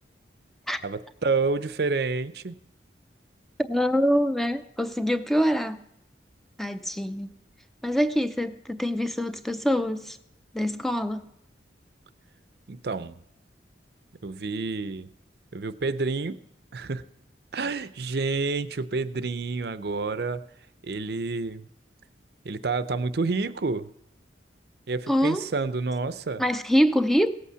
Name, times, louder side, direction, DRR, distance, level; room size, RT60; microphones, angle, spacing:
voice 1, 0.8-2.6 12.7-13.2 14.2-15.1 15.5-16.4 16.7-17.0 17.5-20.4 20.8-21.7 22.4-23.9 24.9-26.4, right 3 dB, 60° right, 14 dB, 0.6 m, -29 dB
voice 2, 3.7-5.8 6.6-7.3 7.8-10.2 10.5-11.2 25.1-25.4 26.4-27.3, equal, ahead, 10 dB, 0.5 m, -24 dB
17.0 x 8.4 x 5.6 m, 0.78 s
head